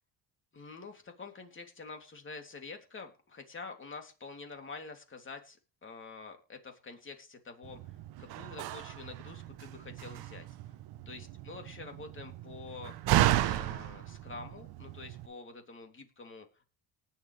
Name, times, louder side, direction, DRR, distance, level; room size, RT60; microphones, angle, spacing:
voice 1, 0.5-7.8 8.2-10.5 11.0-12.9 13.3-16.6, left 4 dB, 30° left, 4 dB, 3.0 m, -47 dB
Slam, 7.6-15.3, right 14 dB, 70° right, 1.0 m, -34 dB
19.0 x 7.5 x 3.4 m, 0.34 s
cardioid pair, 115°, 40 cm